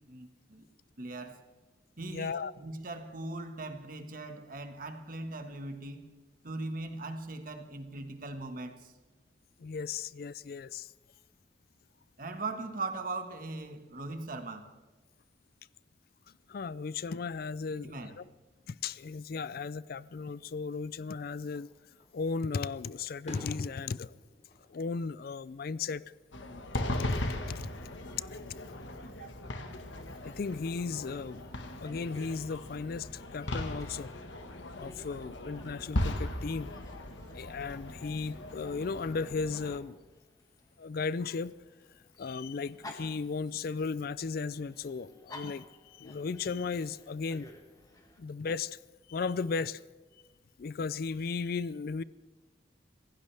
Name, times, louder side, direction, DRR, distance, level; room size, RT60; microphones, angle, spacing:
voice 1, 0.1-0.7 1.0-1.4 2.0-6.1 6.4-8.9 12.2-14.7 17.7-18.1 29.2-29.3, right 2 dB, 50° right, 1.6 m, -40 dB
voice 2, 2.1-2.5 9.6-10.9 16.5-18.2 18.7-21.7 22.1-24.1 24.7-26.0 27.1-27.2 27.5-27.7 30.2-31.4 31.8-34.1 34.7-36.7 37.3-40.0 40.8-41.5 42.2-47.5 48.2-48.8 49.1-49.8 50.6-52.0, left 4 dB, 55° left, 0.4 m, -35 dB
Fireworks, 21.4-22.1 22.6-25.7 26.0-26.6 28.1-29.0, left 1 dB, 35° left, 3.8 m, -50 dB
sound 1, 26.3-39.8, left 1 dB, 90° left, 1.5 m, -38 dB
Dog, 29.9-48.2, left 1 dB, 20° left, 1.8 m, -56 dB
26.0 x 16.0 x 3.4 m
head